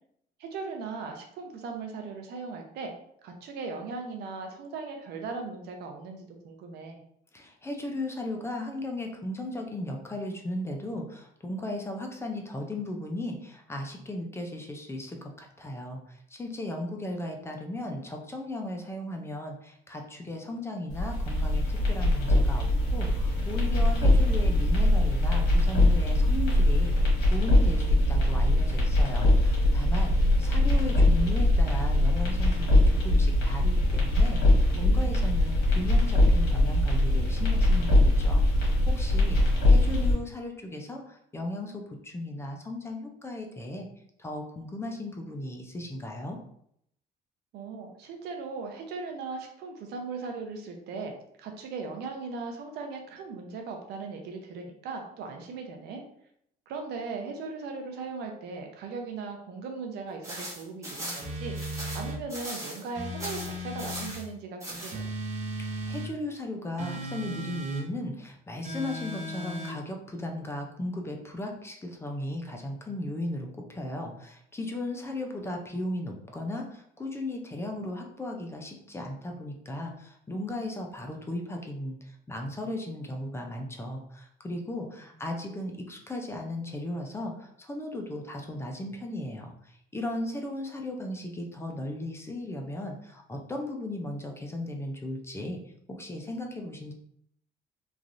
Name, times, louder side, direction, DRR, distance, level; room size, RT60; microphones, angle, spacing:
voice 1, 0.4-2.9 3.2-7.0 30.3-30.9 39.7-40.0 47.5-56.0 56.7-61.6 61.9-65.0, right 4 dB, 75° right, 3 dB, 0.6 m, -38 dB
voice 2, 7.3-43.9 44.2-46.4 65.6-95.6 95.9-96.9, left 1 dB, 15° left, 2 dB, 0.5 m, -36 dB
sound 1, 20.9-40.1, left 1 dB, 75° left, 1.2 m, -22 dB
sound 2, 60.2-62.9 63.2-64.2 64.6-65.0, right 1 dB, 15° right, 1.0 m, -39 dB
sound 3, 61.2-62.2 62.9-64.1 64.9-66.1 66.8-67.9 68.6-69.8, equal, 45° right, 0.7 m, -36 dB
3.1 x 2.4 x 2.5 m, 0.71 s
cardioid pair, 110°, 17 cm